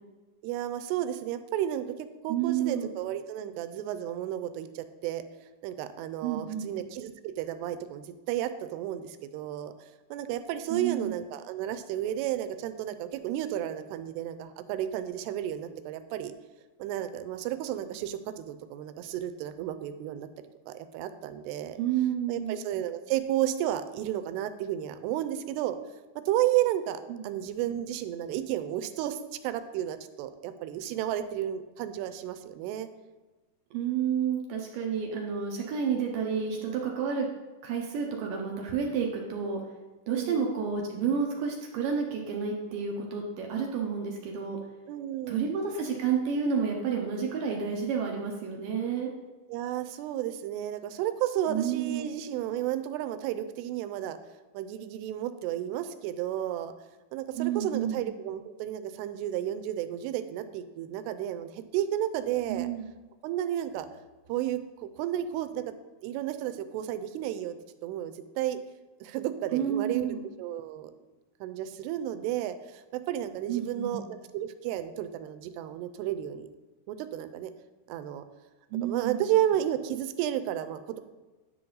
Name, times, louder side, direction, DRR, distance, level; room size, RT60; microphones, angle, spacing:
voice 1, 0.4-2.0 2.2-5.2 5.6-9.7 10.1-16.3 16.8-20.3 20.7-21.8 22.3-25.8 26.3-32.9 40.1-40.5 44.9-45.4 49.5-54.2 54.5-56.7 57.1-62.7 63.2-63.9 64.3-65.7 66.0-67.5 67.8-68.6 69.0-70.1 70.4-70.9 71.4-76.5 76.9-77.5 77.9-78.2 78.8-81.0, right 12 dB, 90° right, 10 dB, 2.6 m, -32 dB
voice 2, 2.3-2.9 6.2-6.7 10.7-11.1 21.8-22.6 27.1-27.3 33.7-37.3 37.6-39.6 40.1-44.6 45.3-49.1 51.5-52.1 57.4-58.0 62.5-62.9 69.5-70.2 73.5-74.0 78.7-79.3, right 7 dB, 75° right, 0 dB, 2.1 m, -30 dB
10.5 x 5.9 x 3.9 m, 1.2 s
omnidirectional pair, 4.7 m